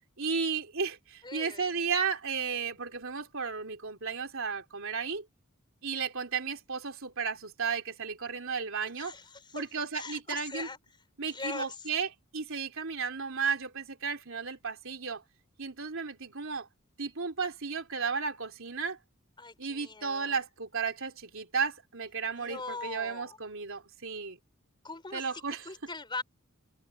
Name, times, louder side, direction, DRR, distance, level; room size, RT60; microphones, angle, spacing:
voice 1, 0.2-5.3 5.8-9.1 9.5-10.7 11.2-15.2 15.6-16.7 17.0-19.0 19.6-24.4 25.1-25.6, right 5 dB, 65° right, 3.6 m, -34 dB
voice 2, 1.2-1.7 9.0-9.6 9.9-10.8 11.3-11.9 19.4-20.4 22.3-23.4 24.8-26.2, left 3 dB, 20° left, 4.5 m, -41 dB
head